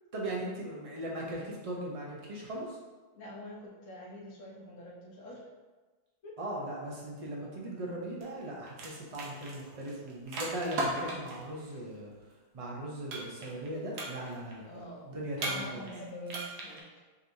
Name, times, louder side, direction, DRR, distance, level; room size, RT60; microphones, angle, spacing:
voice 1, 0.1-2.8 6.4-12.1 12.5-15.9, right 1 dB, 35° right, -3 dB, 0.5 m, -39 dB
voice 2, 3.1-5.5 6.2-6.3 11.5-11.8 14.6-16.9, left 1 dB, 60° left, -6 dB, 1.2 m, -46 dB
Shivering Chandelier, 8.2-8.4 8.7-11.4 13.1-13.7 13.9-14.5 15.4-16.0 16.3-16.8, right 2 dB, 85° right, 1.4 m, -36 dB
5.1 x 3.1 x 2.7 m, 1.3 s
omnidirectional pair, 1.6 m